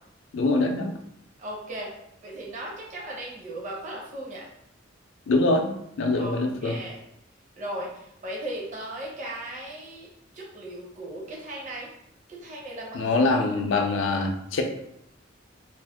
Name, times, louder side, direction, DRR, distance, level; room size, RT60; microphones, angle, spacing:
voice 1, 0.3-0.9 5.3-5.7 6.0-6.7 12.9-14.6, left 2 dB, 70° left, 4 dB, 0.4 m, -23 dB
voice 2, 1.4-1.9 2.2-4.5 6.1-7.1 7.6-10.1 10.3-11.9 12.3-13.1, right 1 dB, 40° right, -3 dB, 0.7 m, -37 dB
2.5 x 2.1 x 3.4 m, 0.77 s
head